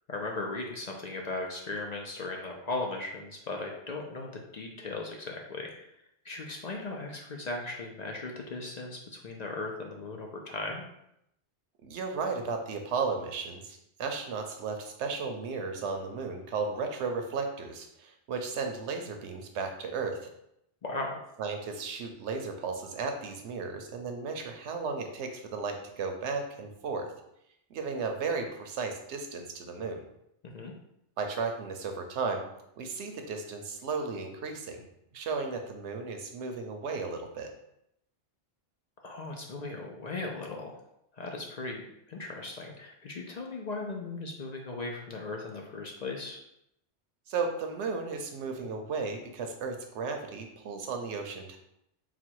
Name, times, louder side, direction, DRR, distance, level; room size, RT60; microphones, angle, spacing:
voice 1, 0.1-5.9 6.2-10.8 20.8-21.2 30.5-30.7 39.0-40.8 41.1-41.8 42.1-46.4, left 3 dB, 50° left, 1 dB, 0.5 m, -37 dB
voice 2, 11.8-20.2 21.4-27.1 27.7-30.0 31.2-32.4 32.8-34.8 35.1-37.5 47.3-51.6, right 4 dB, 90° right, 4 dB, 1.0 m, -34 dB
4.0 x 2.2 x 4.5 m, 0.79 s
omnidirectional pair, 1.1 m